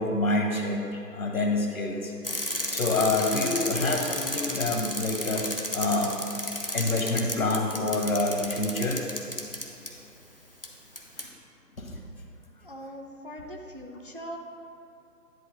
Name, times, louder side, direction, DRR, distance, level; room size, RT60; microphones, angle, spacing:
voice 1, 0.0-2.1 2.7-6.3 6.7-9.1 11.8-11.9, left 2 dB, 55° left, 2 dB, 1.3 m, -27 dB
Bicycle, 2.2-9.9 10.6-10.7 11.0-11.3, left 1 dB, 35° left, 0.6 m, -33 dB
voice 2, 12.6-14.4, equal, 35° right, 2 dB, 0.5 m, -41 dB
10.5 x 3.8 x 6.2 m, 2.8 s
figure-of-eight pair, 160°, 48 cm